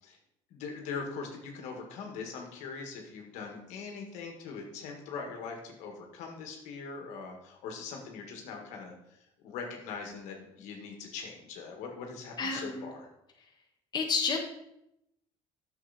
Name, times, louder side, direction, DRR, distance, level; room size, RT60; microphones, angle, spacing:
voice 1, 0.5-9.2 9.4-13.1, left 5 dB, 85° left, 2 dB, 1.9 m, -41 dB
voice 2, 12.4-12.9 13.9-14.4, left 5 dB, 35° left, 1 dB, 1.6 m, -30 dB
9.6 x 7.2 x 4.2 m, 0.83 s
cardioid pair, 110°, 12 cm